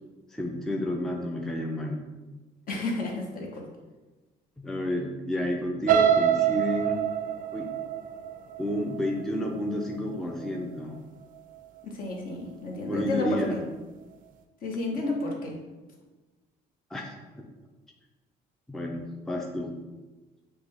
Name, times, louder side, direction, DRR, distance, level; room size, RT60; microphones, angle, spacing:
voice 1, 0.3-2.0 4.6-7.0 7.5-7.7 8.6-11.0 12.9-13.6 14.9-15.0 16.9-17.1 18.7-19.8, left 1 dB, 5° left, 1 dB, 0.4 m, -31 dB
voice 2, 2.7-3.6 11.8-13.6 14.6-15.6, left 2 dB, 55° left, 0 dB, 1.0 m, -31 dB
sound 1, 5.9-9.8 10.3-10.6 11.0-11.1, right 9 dB, 55° right, 0.4 m, -26 dB
5.9 x 2.3 x 3.4 m, 1.2 s
cardioid pair, 110°, 17 cm